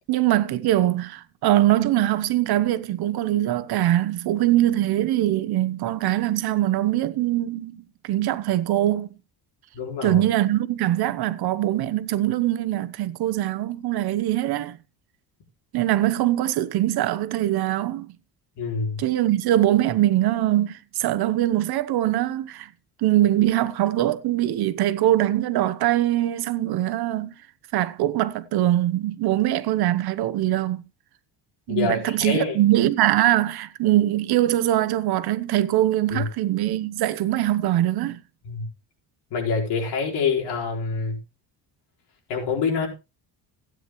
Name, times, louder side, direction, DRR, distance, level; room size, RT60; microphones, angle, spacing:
voice 1, 0.1-9.1 10.0-14.8 15.7-18.1 19.0-22.7 23.0-27.3 27.7-30.8 31.7-38.2, right 14 dB, 65° right, 1.0 m, -22 dB
voice 2, 9.7-10.2 18.6-19.0 31.7-32.6 36.1-36.2 38.4-38.6 39.3-41.2 42.3-42.9, left 5 dB, 75° left, 4.5 m, -26 dB
16.0 x 9.3 x 3.1 m
cardioid pair, 155°, 40 cm